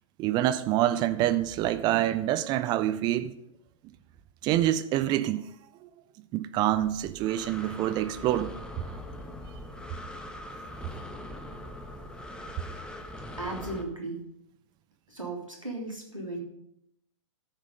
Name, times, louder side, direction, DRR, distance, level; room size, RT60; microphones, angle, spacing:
voice 1, 0.2-3.3 4.4-5.4 6.3-8.5, right 13 dB, 25° right, 0.6 m, -26 dB
Breathing, 6.7-13.8, left 1 dB, 5° left, 1.1 m, -42 dB
voice 2, 13.4-14.2 15.1-16.4, right 2 dB, 90° right, 3.3 m, -36 dB
13.0 x 7.4 x 5.2 m
figure-of-eight pair, 105°, 16 cm